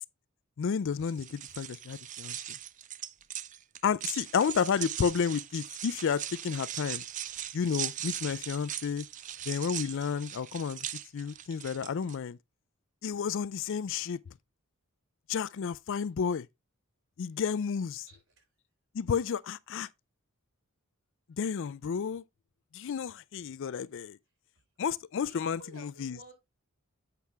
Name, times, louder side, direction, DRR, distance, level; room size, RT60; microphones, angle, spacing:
voice 1, 0.6-2.4 3.8-7.0 7.5-9.1 9.5-10.9 11.1-12.4 13.0-14.2 15.3-16.5 17.2-18.1 18.9-19.9 21.4-22.2 22.7-24.2 24.8-26.2, left 6 dB, 60° left, 0.4 m, -31 dB
sound 1, 1.0-12.2, right 11 dB, 35° right, 0.4 m, -40 dB
voice 2, 18.1-18.4 25.3-26.3, right 2 dB, 60° right, 4.0 m, -51 dB
8.4 x 5.8 x 3.4 m
head